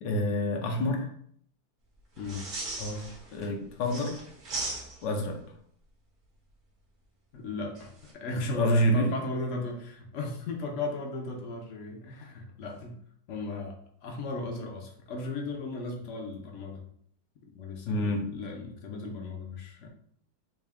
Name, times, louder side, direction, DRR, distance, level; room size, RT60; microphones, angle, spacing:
voice 1, 0.0-1.1 2.8-4.2 5.0-5.4 8.4-9.1 17.9-18.3, equal, 80° left, 2 dB, 1.4 m, -28 dB
sound 1, 2.2-3.5 3.8-5.3 7.7-8.1, right 2 dB, 50° right, 0.6 m, -38 dB
voice 2, 7.3-13.0 13.3-16.8 17.5-19.9, left 3 dB, 65° left, 1 dB, 0.7 m, -36 dB
3.5 x 2.7 x 3.4 m, 0.63 s
omnidirectional pair, 1.9 m